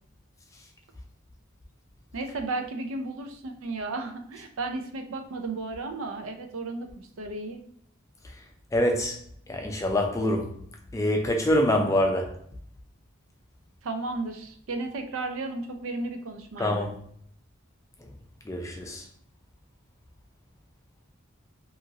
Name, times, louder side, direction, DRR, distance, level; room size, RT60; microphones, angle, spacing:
voice 1, 2.1-6.9 7.2-7.6 13.8-16.9, right 2 dB, 75° right, 5 dB, 0.5 m, -34 dB
voice 2, 8.7-9.2 9.5-10.6 10.9-12.3 16.6-17.0 18.0-18.1 18.5-19.1, left 1 dB, 15° left, 2 dB, 0.3 m, -25 dB
2.9 x 2.4 x 2.7 m, 0.62 s
head